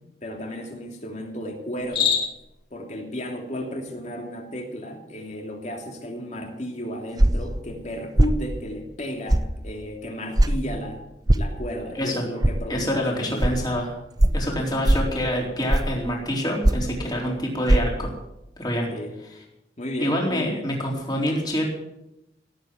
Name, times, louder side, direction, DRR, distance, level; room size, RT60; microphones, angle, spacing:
voice 1, 0.2-2.2 2.7-11.0 11.3-13.5 18.9-19.2 19.8-20.7, equal, 40° left, 2 dB, 2.9 m, -34 dB
Cricket, 1.8-2.5, left 7 dB, 85° left, 4.1 m, -24 dB
sound 1, 7.2-7.5 8.2-8.4 9.3-9.5 10.4-10.5 11.3-11.5 12.4-12.6 13.4-13.5 14.2-14.4 14.8-15.1 15.7-16.0 16.6-16.9 17.7-17.8, right 1 dB, 20° right, 0.6 m, -18 dB
voice 2, 12.7-13.9 14.3-18.1 18.6-18.9 20.0-21.6, equal, 25° left, -1 dB, 4.1 m, -26 dB
17.5 x 8.5 x 7.8 m, 0.86 s
head